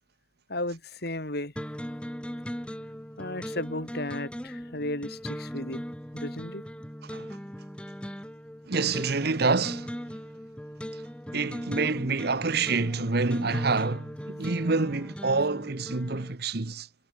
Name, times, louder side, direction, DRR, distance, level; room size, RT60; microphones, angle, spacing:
voice 1, 0.5-1.5 3.2-5.8 6.1-6.6, left 1 dB, 60° left, 5.6 m, -34 dB
sound 1, 1.6-16.3, equal, 5° left, 6.2 m, -39 dB
voice 2, 8.7-9.9 11.3-16.9, right 3 dB, 55° right, 1.1 m, -27 dB
head